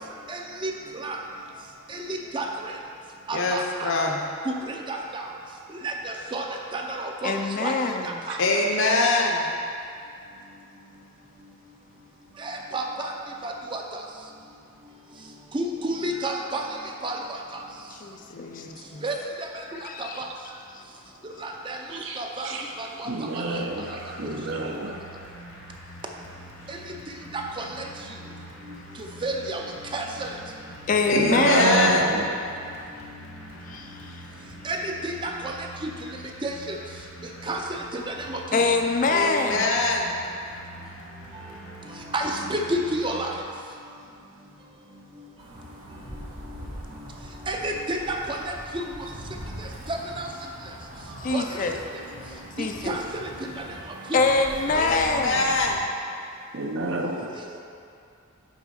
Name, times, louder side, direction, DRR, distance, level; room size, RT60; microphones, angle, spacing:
voice 1, 0.3-0.7 1.0-1.2 1.9-2.5 3.3-3.9 4.5-5.2 5.8-6.4 6.7-7.3 7.6-7.7 8.0-8.4 12.4-13.1 13.4-13.8 15.5-16.6 17.0-17.2 19.0-19.1 20.2-20.3 21.4-21.8 22.2-22.5 22.8-23.1 23.4-23.5 27.3-27.6 29.2-29.6 29.9-30.3 34.7-35.5 35.8-35.9 36.4-36.5 37.5-37.6 37.9-38.4 42.1-43.3 47.5-48.8 49.9-50.3 51.3-51.4 52.6-53.3, right 1 dB, 25° right, 1 dB, 0.5 m, -30 dB
voice 2, 3.3-4.2 8.4-9.5 18.3-19.0 31.1-32.1 39.1-40.2 54.7-55.9, left 3 dB, 60° left, 1 dB, 0.8 m, -24 dB
voice 3, 7.2-8.1 17.9-18.7 19.7-20.2 30.9-31.9 33.7-33.9 38.5-39.7 51.2-51.8 52.6-53.0 54.1-55.5, left 3 dB, 40° left, 4 dB, 0.4 m, -24 dB
voice 4, 21.9-22.6 23.0-25.0 31.1-32.4 56.5-57.3, right 2 dB, 60° right, 2 dB, 0.7 m, -27 dB
sound 1, 23.5-43.4, equal, 85° left, 1.4 m, -45 dB
sound 2, 45.4-55.7, equal, 90° right, 1.3 m, -41 dB
6.4 x 4.4 x 5.3 m, 2.5 s
head